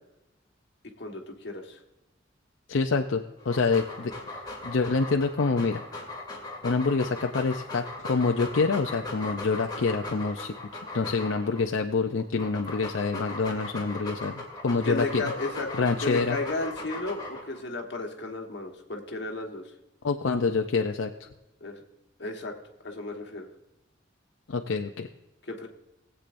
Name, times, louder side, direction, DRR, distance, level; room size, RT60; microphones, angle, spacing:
voice 1, 1.0-1.8 14.8-19.7 21.6-21.8 22.2-22.5 22.8-23.5 25.5-25.7, left 2 dB, 60° left, 1 dB, 1.5 m, -34 dB
voice 2, 2.7-5.8 6.6-10.5 10.9-15.2 15.8-16.4 20.0-21.3 24.5-25.1, left 4 dB, 85° left, 4 dB, 0.6 m, -27 dB
Dog, 3.4-11.6 12.2-17.6, left 2 dB, 20° left, 2.4 m, -38 dB
20.0 x 8.4 x 2.6 m, 0.95 s
head